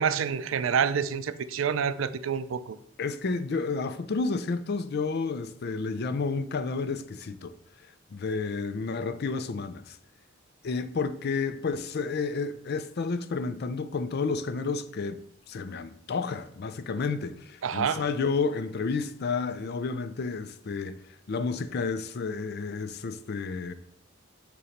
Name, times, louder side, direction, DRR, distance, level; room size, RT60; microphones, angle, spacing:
voice 1, 0.0-2.8 17.6-18.1, right 7 dB, 80° right, 0.4 m, -27 dB
voice 2, 3.0-7.5 8.1-10.0 10.6-15.2 15.5-21.0 21.3-23.7, left 4 dB, 55° left, 0.5 m, -31 dB
6.9 x 3.1 x 5.0 m
head